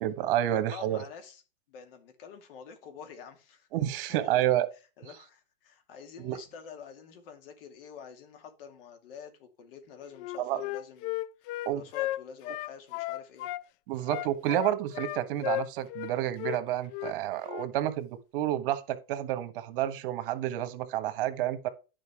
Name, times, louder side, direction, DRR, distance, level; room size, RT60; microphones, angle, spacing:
voice 1, 0.0-1.0 3.7-4.7 6.2-6.4 10.4-10.6 11.6-11.8 13.9-21.7, right 12 dB, 60° right, 1.4 m, -29 dB
voice 2, 0.5-1.4 1.7-3.7 4.1-4.5 5.0-13.5, left 6 dB, 65° left, 2.5 m, -48 dB
Wind instrument woodwind instrument, 10.2-13.6 14.1-16.1 16.4-16.6 16.9-17.1 17.4-17.7, left 16 dB, 40° left, 0.5 m, -34 dB
11.0 x 5.4 x 3.5 m
hypercardioid pair, 125°, 30 cm